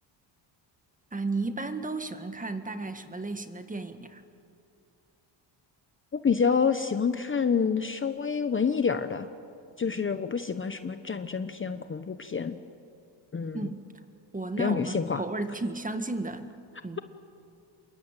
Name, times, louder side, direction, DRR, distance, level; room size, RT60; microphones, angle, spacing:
voice 1, 1.1-4.2 13.5-13.8 14.3-16.5 16.8-17.0, right 3 dB, 15° right, 9 dB, 1.8 m, -33 dB
voice 2, 6.1-9.3 9.8-12.6 13.3-13.6 14.6-15.2, left 6 dB, 25° left, 10 dB, 1.0 m, -27 dB
28.0 x 23.0 x 9.1 m, 2.5 s
cardioid pair, 100°, 47 cm